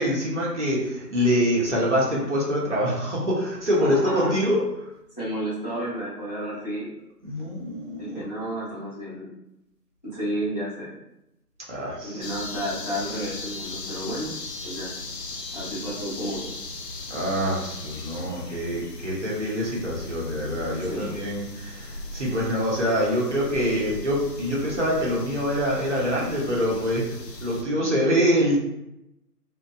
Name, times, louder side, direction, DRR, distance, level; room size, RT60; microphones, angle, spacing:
voice 1, 0.0-4.6 7.2-8.2 11.7-12.3 17.1-27.1 27.4-28.6, equal, 45° right, -5 dB, 0.8 m, -25 dB
voice 2, 3.8-4.4 5.2-6.9 8.0-9.3 10.0-10.9 12.0-14.3 14.6-14.9 15.5-16.5 20.8-21.2, equal, 25° left, -13 dB, 1.1 m, -31 dB
sound 1, 12.2-27.6, left 2 dB, 80° left, 0.6 m, -38 dB
2.7 x 2.0 x 2.3 m, 0.86 s
figure-of-eight pair, 160°, 49 cm